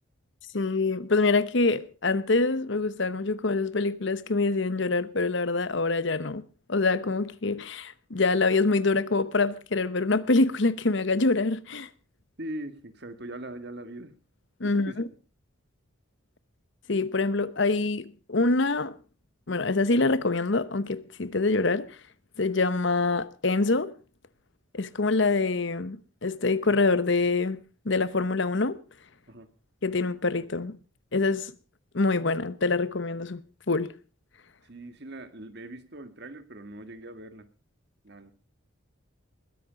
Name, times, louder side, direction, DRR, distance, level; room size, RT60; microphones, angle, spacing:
voice 1, 0.5-6.4 6.7-11.9 14.6-14.9 16.9-18.9 19.5-22.0 22.4-23.9 24.7-27.6 27.8-28.8 29.8-30.8 31.1-31.5 31.9-33.9, left 3 dB, 60° left, 0.9 m, -25 dB
voice 2, 12.4-14.2 14.6-15.0 29.3-29.5 34.6-37.5 38.0-38.3, right 1 dB, 50° right, 1.8 m, -41 dB
21.0 x 10.5 x 5.2 m
head